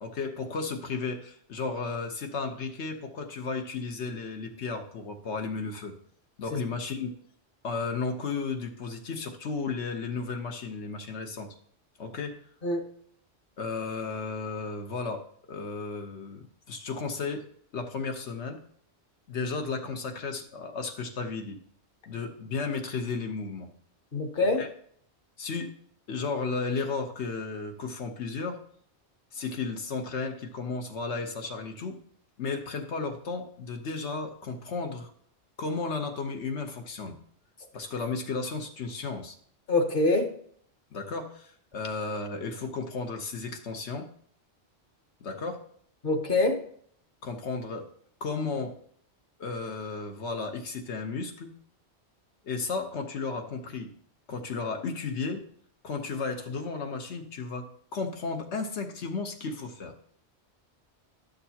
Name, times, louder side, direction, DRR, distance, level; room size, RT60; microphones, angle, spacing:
voice 1, 0.0-5.9 6.4-7.1 7.6-11.5 12.0-12.4 13.6-17.5 17.7-18.6 19.3-21.6 22.1-23.7 24.6-24.7 25.4-25.7 26.1-28.6 29.3-32.0 32.4-35.1 35.6-37.1 37.7-39.4 40.9-44.1 45.2-45.6 47.2-47.9 48.2-48.8 49.4-51.5 52.4-53.9 54.3-55.4 55.8-59.9, left 4 dB, 90° left, 5 dB, 1.3 m, -34 dB
voice 2, 24.1-24.6 39.7-40.3 46.0-46.6, left 2 dB, 50° left, 4 dB, 1.2 m, -25 dB
11.5 x 6.6 x 2.8 m, 0.62 s
omnidirectional pair, 1.1 m